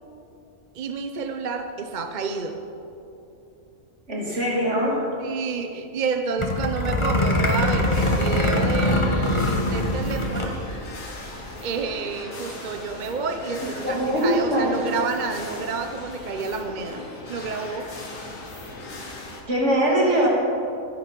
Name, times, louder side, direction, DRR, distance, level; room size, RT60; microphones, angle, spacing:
voice 1, 0.7-2.6 5.2-10.6 11.6-17.9, right 4 dB, 45° right, 6 dB, 0.7 m, -29 dB
voice 2, 4.1-5.0 13.8-14.8 19.5-20.3, right 1 dB, 60° right, -3 dB, 3.1 m, -22 dB
sound 1, 6.4-10.5 10.8-10.9 11.2-11.5, left 1 dB, 25° left, 1.6 m, -23 dB
sound 2, 7.4-19.4, left 2 dB, 80° left, 2.2 m, -39 dB
23.5 x 10.5 x 4.5 m, 2.9 s
omnidirectional pair, 1.4 m